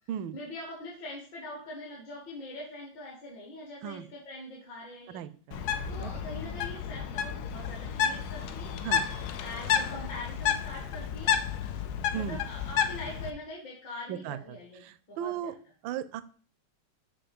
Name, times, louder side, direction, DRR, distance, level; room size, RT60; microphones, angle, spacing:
voice 1, 0.3-5.2 5.9-8.8 9.4-11.4 12.1-15.5, left 1 dB, 60° left, -3 dB, 2.0 m, -43 dB
voice 2, 5.1-6.1 8.8-9.1 12.1-12.4 14.1-14.4 14.8-15.5 15.8-16.2, right 9 dB, 75° right, 13 dB, 1.2 m, -36 dB
Bird, 5.5-13.3, left 8 dB, 80° left, 0.9 m, -31 dB
7.1 x 2.8 x 5.1 m, 0.42 s
omnidirectional pair, 2.3 m